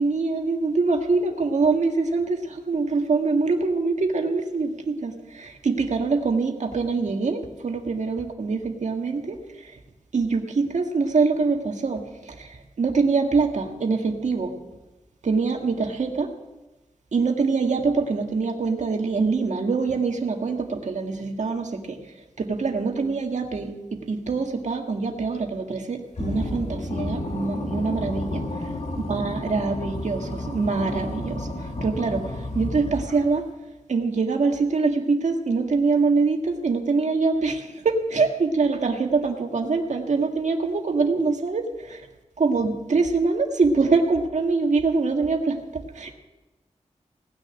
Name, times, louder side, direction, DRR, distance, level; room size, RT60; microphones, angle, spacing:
voice 1, 0.0-9.8 10.1-14.5 15.2-16.3 17.1-22.0 22.4-28.4 29.1-33.5 33.9-42.0 42.4-46.1, right 4 dB, 75° right, 4 dB, 1.9 m, -24 dB
sound 1, 26.1-33.4, left 1 dB, 65° left, 2.5 m, -31 dB
18.5 x 6.4 x 9.9 m, 1.1 s
wide cardioid pair, 70°, 12 cm